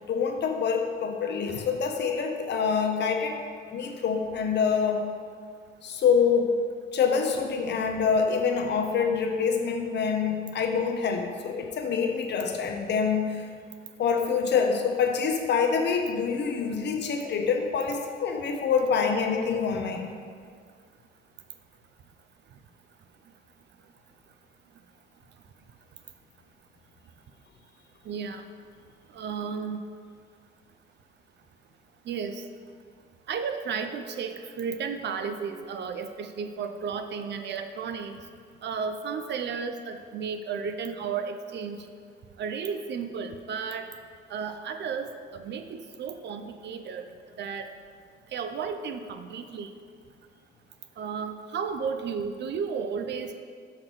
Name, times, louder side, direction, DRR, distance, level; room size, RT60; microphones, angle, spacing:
voice 1, 0.1-3.4 3.7-5.1 5.8-6.6 6.9-13.5 14.0-20.1, left 6 dB, 60° left, 3 dB, 0.9 m, -26 dB
voice 2, 28.1-28.4 29.1-29.8 32.1-32.4 33.3-38.2 38.6-41.8 42.4-43.9 44.3-47.0 47.4-47.7 48.3-49.7 51.0-53.3, right 6 dB, 60° right, 7 dB, 0.6 m, -33 dB
6.5 x 3.8 x 6.1 m, 2.1 s
cardioid pair, 90°, 20 cm